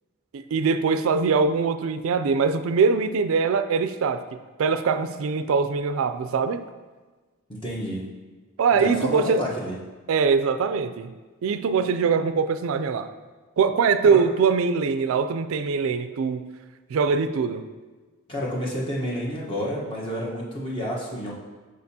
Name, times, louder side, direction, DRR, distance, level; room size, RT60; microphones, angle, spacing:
voice 1, 0.3-4.2 4.6-6.6 8.6-9.5 10.1-11.1 11.4-13.1 13.6-16.5 16.9-17.7, right 5 dB, 70° right, 10 dB, 0.3 m, -22 dB
voice 2, 7.5-8.0 8.8-9.8 14.0-14.2 18.3-21.3, equal, 25° left, -5 dB, 1.1 m, -29 dB
6.5 x 6.3 x 2.8 m, 1.3 s
head